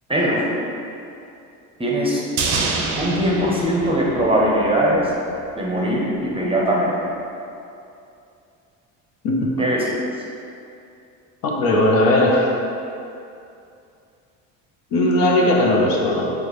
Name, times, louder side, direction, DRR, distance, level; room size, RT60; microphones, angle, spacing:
voice 1, 0.1-0.5 1.8-2.2 3.0-5.1 5.5-7.1 9.6-9.9, equal, 15° right, -4 dB, 0.6 m, -20 dB
sound 1, 2.4-4.8 5.0-5.1, right 4 dB, 70° right, 0.6 m, -26 dB
voice 2, 11.4-12.5 14.9-16.3, left 1 dB, 60° left, -1 dB, 0.7 m, -18 dB
4.7 x 2.1 x 3.0 m, 2.6 s
supercardioid pair, 80°, 39 cm